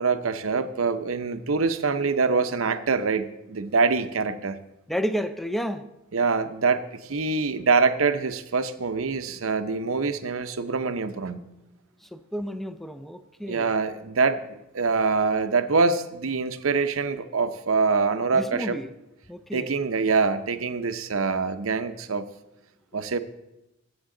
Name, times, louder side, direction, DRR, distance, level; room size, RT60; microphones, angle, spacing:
voice 1, 0.0-4.6 6.1-11.4 13.5-14.4 14.7-18.8 19.5-22.3 22.9-23.2, right 4 dB, 80° right, 10 dB, 0.8 m, -24 dB
voice 2, 4.9-5.9 12.0-13.7 18.3-18.9 19.3-19.8, equal, ahead, 10 dB, 0.5 m, -31 dB
20.5 x 8.1 x 3.8 m, 0.91 s
head